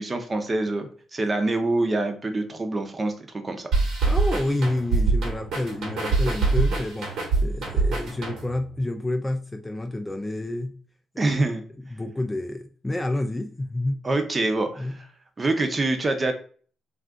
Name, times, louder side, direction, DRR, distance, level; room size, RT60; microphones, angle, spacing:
voice 1, 0.0-3.1 3.4-3.7 11.2-11.6 14.0-14.9 15.4-16.3, right 2 dB, 30° right, 0.6 m, -25 dB
sound 1, 3.7-8.7, right 3 dB, 75° right, 1.1 m, -24 dB
voice 2, 4.1-10.8 11.3-11.4 11.8-14.0 14.8-15.0, left 1 dB, 15° left, 0.3 m, -29 dB
2.5 x 2.4 x 3.5 m
cardioid pair, 90°, 0 cm